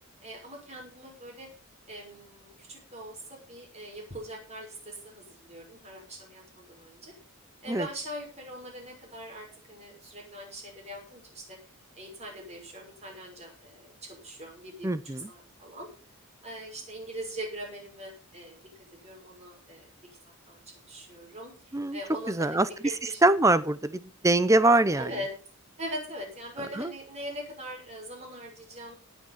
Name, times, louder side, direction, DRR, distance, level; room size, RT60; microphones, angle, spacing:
voice 1, 0.2-1.5 1.9-7.1 7.6-11.6 12.0-14.9 15.1-15.9 16.4-18.7 19.0-19.9 20.5-20.6 20.9-22.7 23.0-23.2 25.0-25.3 25.8-28.9, equal, 30° right, 0 dB, 6.0 m, -41 dB
voice 2, 14.8-15.3 21.7-22.0 22.3-22.7 23.2-25.1 26.8-26.9, right 2 dB, 15° right, 14 dB, 0.6 m, -23 dB
18.0 x 6.4 x 5.6 m, 0.36 s
head